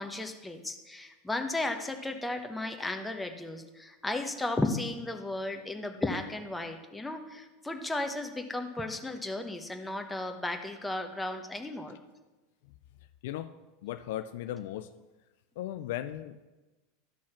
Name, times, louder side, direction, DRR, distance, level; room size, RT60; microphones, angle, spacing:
voice 1, 0.0-12.0, left 2 dB, 10° left, 5 dB, 1.2 m, -34 dB
voice 2, 13.2-13.5 13.8-14.9 15.6-16.4, left 12 dB, 65° left, 11 dB, 0.4 m, -37 dB
12.0 x 6.2 x 5.9 m, 1.2 s
hypercardioid pair, 85°, 0 cm